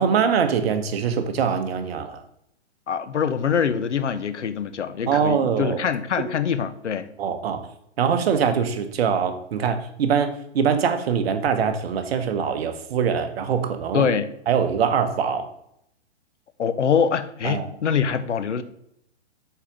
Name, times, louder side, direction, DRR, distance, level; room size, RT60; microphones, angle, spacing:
voice 1, 0.0-2.2 5.1-5.9 6.2-6.3 7.2-7.6 8.0-14.1 14.5-15.5 17.4-17.7, right 7 dB, 60° right, 1.2 m, -23 dB
voice 2, 2.9-7.1 13.9-14.3 16.6-18.6, left 7 dB, 85° left, 0.8 m, -24 dB
7.1 x 4.7 x 5.2 m
hypercardioid pair, 120°, 34 cm